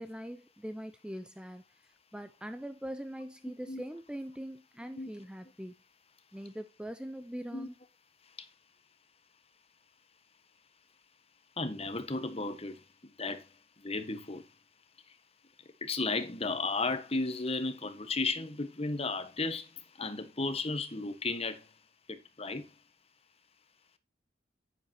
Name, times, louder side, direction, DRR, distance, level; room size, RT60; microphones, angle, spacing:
voice 1, 0.0-1.6 2.1-5.7 6.3-7.7, equal, 5° right, 0.7 m, -42 dB
voice 2, 11.6-12.8 13.2-13.5 13.8-14.5 15.8-19.7 20.0-21.6 22.1-22.7, left 3 dB, 30° left, 1.4 m, -34 dB
10.0 x 10.0 x 2.9 m
head